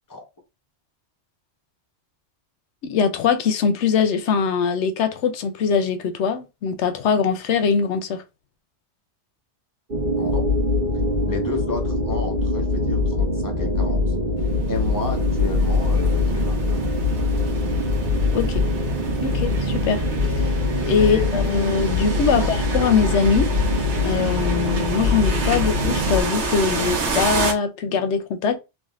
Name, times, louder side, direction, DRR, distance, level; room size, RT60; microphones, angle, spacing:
voice 1, 2.8-8.2 18.3-18.6 19.2-20.6 20.9-23.5 24.0-28.6, left 6 dB, 85° left, 0.9 m, -22 dB
sound 1, 9.9-26.2, left 2 dB, 50° right, 1.2 m, -23 dB
voice 2, 10.2-10.5 11.2-14.1 14.7-16.9 21.0-21.3 22.2-22.5, left 3 dB, 25° left, 0.5 m, -32 dB
sound 2, 14.4-27.5, right 3 dB, 80° right, 1.0 m, -30 dB
3.4 x 2.4 x 2.3 m
omnidirectional pair, 1.2 m